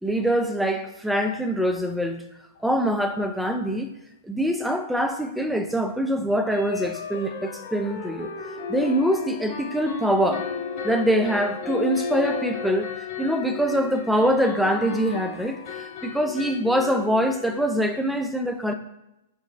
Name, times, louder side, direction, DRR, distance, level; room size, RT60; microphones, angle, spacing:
voice 1, 0.0-2.2 2.6-3.9 4.2-8.3 8.7-10.5 10.8-18.7, equal, ahead, 6 dB, 0.4 m, -24 dB
sound 1, 2.5-2.6 3.0-3.2 3.5-3.6 6.5-18.0, left 6 dB, 45° left, 0.7 m, -34 dB
4.4 x 2.7 x 4.2 m, 0.86 s
figure-of-eight pair, 110°, 0 cm